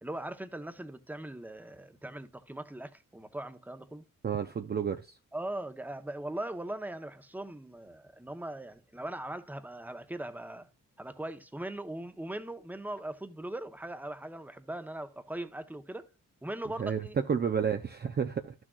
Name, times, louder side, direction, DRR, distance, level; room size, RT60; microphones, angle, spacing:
voice 1, 0.0-4.0 5.3-10.7 11.0-16.1 16.4-17.2, right 1 dB, 5° right, 0.8 m, -40 dB
voice 2, 4.2-5.2 16.8-18.5, right 7 dB, 30° right, 0.5 m, -31 dB
12.0 x 6.2 x 2.3 m
cardioid pair, 70°, 32 cm